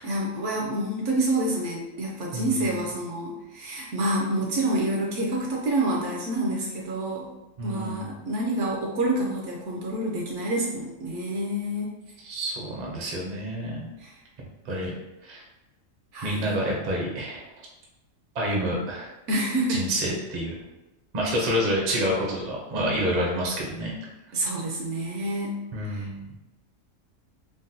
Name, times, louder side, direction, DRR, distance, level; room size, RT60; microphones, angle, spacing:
voice 1, 0.0-7.3 7.6-11.9 14.0-14.1 16.1-16.5 19.3-19.8 24.3-25.5 25.9-26.1, right 1 dB, 65° right, -2 dB, 0.9 m, -28 dB
voice 2, 2.3-2.8 7.6-8.1 12.2-13.9 14.6-14.9 15.2-15.4 16.2-17.4 18.3-19.1 19.7-20.5 21.1-23.9 25.7-26.3, equal, 45° right, -2 dB, 0.6 m, -28 dB
3.7 x 2.2 x 2.6 m, 1.0 s
omnidirectional pair, 1.5 m